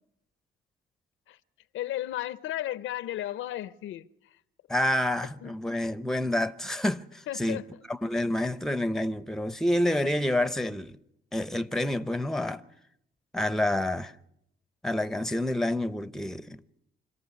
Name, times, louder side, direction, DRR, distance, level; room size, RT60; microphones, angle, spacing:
voice 1, 1.7-4.1 5.4-5.5 7.3-7.7, left 13 dB, 85° left, 0.8 m, -34 dB
voice 2, 4.7-7.6 7.9-11.0 11.3-12.6 13.3-14.1 14.8-16.6, left 1 dB, ahead, 0.8 m, -28 dB
26.0 x 14.0 x 9.6 m
cardioid pair, 90°, 20 cm